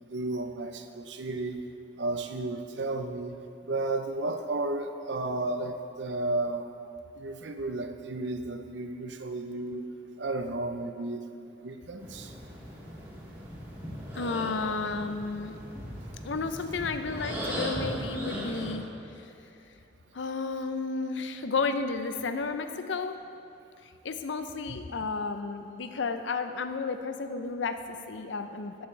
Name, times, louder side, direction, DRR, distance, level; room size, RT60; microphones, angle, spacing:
voice 1, 0.1-1.6 2.0-3.4 3.7-6.7 7.2-9.8 10.2-12.3, right 2 dB, 75° right, 7 dB, 0.6 m, -33 dB
sound 1, 12.0-18.7, equal, 15° right, 2.2 m, -38 dB
voice 2, 14.1-15.6 16.2-18.8 19.2-19.3 20.1-23.1 23.8-28.9, left 4 dB, 80° left, 8 dB, 0.6 m, -32 dB
13.0 x 8.5 x 3.3 m, 2.6 s
head